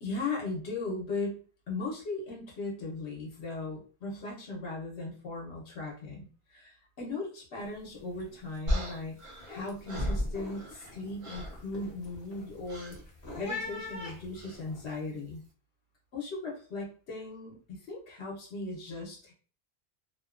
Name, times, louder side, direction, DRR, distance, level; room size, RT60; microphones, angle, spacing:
voice 1, 0.0-9.2 9.4-13.0 13.4-15.4 16.1-19.3, left 3 dB, 85° left, -3 dB, 1.0 m, -38 dB
sound 1, 7.6-7.9 8.1-8.6 9.0-14.9, left 3 dB, 65° left, 0.9 m, -44 dB
sound 2, 8.7-10.9 11.2-11.6 12.7-13.0 14.3-14.6, equal, 45° right, 0.4 m, -34 dB
2.7 x 2.1 x 2.3 m, 0.40 s
omnidirectional pair, 1.1 m